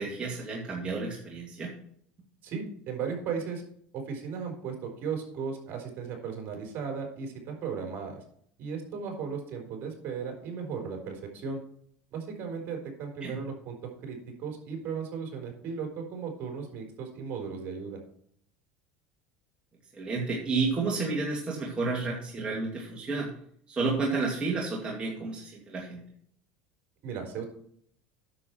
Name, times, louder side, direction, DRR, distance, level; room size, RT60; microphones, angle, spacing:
voice 1, 0.0-1.7 13.2-13.4 19.9-23.3 23.7-26.0, right 3 dB, 25° right, -3 dB, 2.5 m, -31 dB
voice 2, 2.4-3.6 3.9-8.2 8.6-11.6 12.1-18.0 27.0-27.5, right 6 dB, 50° right, 2 dB, 4.3 m, -36 dB
9.7 x 7.3 x 4.6 m, 0.64 s
supercardioid pair, 105°, 4 cm